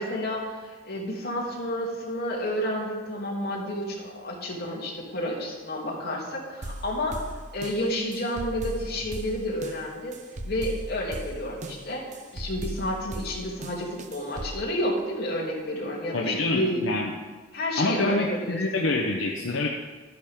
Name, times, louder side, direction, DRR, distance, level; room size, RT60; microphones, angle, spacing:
voice 1, 0.0-7.2 7.5-10.2 10.4-12.0 12.3-16.9 17.5-18.8, left 1 dB, 55° left, -3 dB, 2.7 m, -30 dB
sound 1, 6.6-14.6, right 1 dB, 40° right, 0.6 m, -38 dB
voice 2, 16.1-17.1 17.8-19.7, left 2 dB, 80° left, 0 dB, 0.9 m, -26 dB
12.0 x 10.0 x 3.6 m, 1.4 s
head